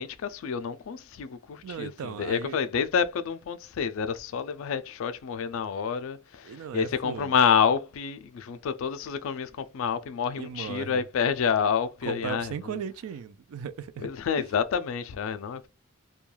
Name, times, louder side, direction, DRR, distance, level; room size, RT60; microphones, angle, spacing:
voice 1, 0.0-12.8 14.0-15.7, left 6 dB, 65° left, 0.3 m, -28 dB
voice 2, 1.6-2.6 6.5-7.3 10.3-11.0 12.1-14.1 14.4-14.5, right 7 dB, 75° right, 0.3 m, -37 dB
2.2 x 2.2 x 3.1 m
head